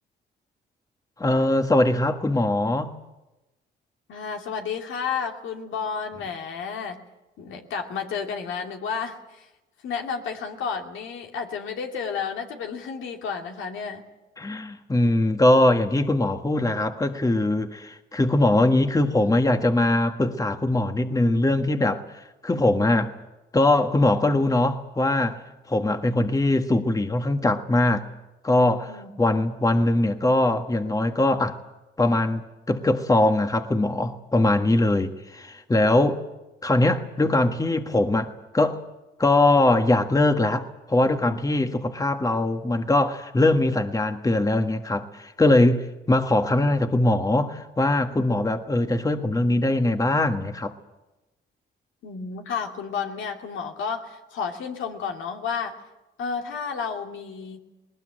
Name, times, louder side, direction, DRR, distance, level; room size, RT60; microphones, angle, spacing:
voice 1, 1.2-2.9 14.4-22.0 22.4-23.1 23.5-25.4 25.7-28.1 28.4-31.6 32.0-32.4 32.7-36.2 36.6-38.8 39.2-50.7, left 2 dB, 15° left, 7 dB, 1.6 m, -21 dB
voice 2, 4.1-7.0 7.4-9.5 9.8-14.0 28.9-29.1 52.0-55.8 56.2-57.6, left 6 dB, 80° left, 3 dB, 2.7 m, -31 dB
20.0 x 19.5 x 9.0 m, 1.0 s
cardioid pair, 90°, 20 cm